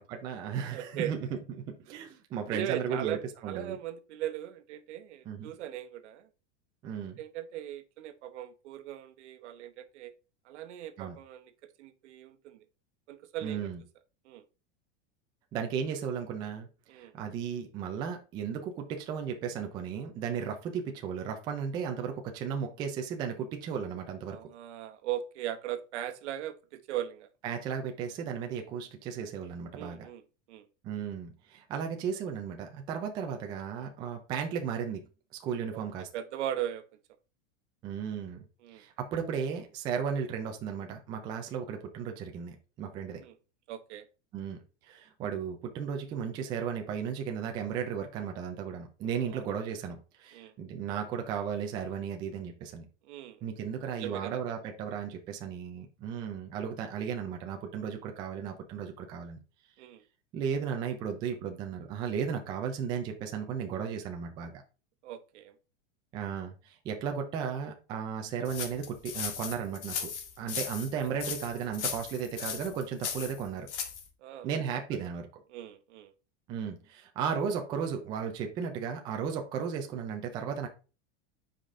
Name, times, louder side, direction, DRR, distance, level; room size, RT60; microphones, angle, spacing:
voice 1, 0.1-1.4 1.7-3.2 3.4-3.8 5.3-5.5 6.8-7.2 11.0-11.2 13.4-13.8 15.5-24.4 27.4-30.1 30.8-35.1 35.4-36.1 37.8-38.5 38.7-43.2 44.3-52.9 53.4-59.4 60.3-64.5 66.1-73.7 74.4-75.3 76.5-80.7, right 7 dB, 15° right, 0.3 m, -35 dB
voice 2, 0.7-1.1 2.5-6.3 7.2-10.1 10.4-11.5 11.8-12.6 13.1-13.7 14.2-14.4 16.9-17.1 24.3-27.3 29.7-30.2 30.5-30.6 35.7-35.8 36.1-36.8 38.6-38.8 43.2-43.3 43.7-44.1 49.1-49.5 50.3-50.6 53.0-53.4 54.0-54.4 59.8-60.0 65.0-65.5 74.2-74.6 74.9-75.0 75.5-76.1, right 11 dB, 70° right, 1.0 m, -39 dB
sound 1, 68.4-74.1, left 7 dB, 70° left, 1.9 m, -37 dB
7.5 x 5.0 x 3.6 m
supercardioid pair, 175°, 36 cm